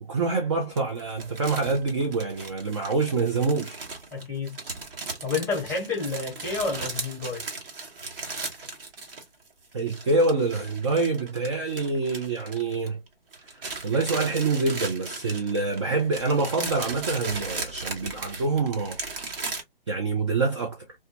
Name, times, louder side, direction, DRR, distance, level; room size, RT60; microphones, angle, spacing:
voice 1, 0.0-3.8 9.7-13.0 13.8-19.0 19.9-20.8, right 3 dB, 30° right, 0.4 m, -26 dB
sound 1, 0.8-9.5 9.7-13.1 13.3-19.6, right 3 dB, 65° right, 1.1 m, -37 dB
voice 2, 4.1-4.6 5.2-7.4, left 4 dB, 5° left, 0.8 m, -29 dB
2.2 x 2.1 x 2.7 m
figure-of-eight pair, 135°, 30 cm